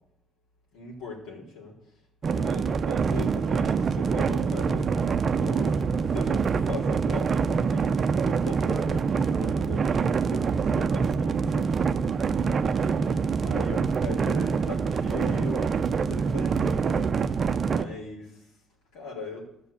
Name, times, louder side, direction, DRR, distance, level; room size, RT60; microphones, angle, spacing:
voice 1, 0.7-1.8 2.2-5.0 5.3-11.7 12.1-18.6 18.9-19.5, left 4 dB, 85° left, -4 dB, 4.1 m, -40 dB
sound 1, 2.2-17.8, right 5 dB, 40° right, 0.6 m, -25 dB
13.5 x 6.0 x 8.3 m, 0.78 s
cardioid pair, 120°, 0 cm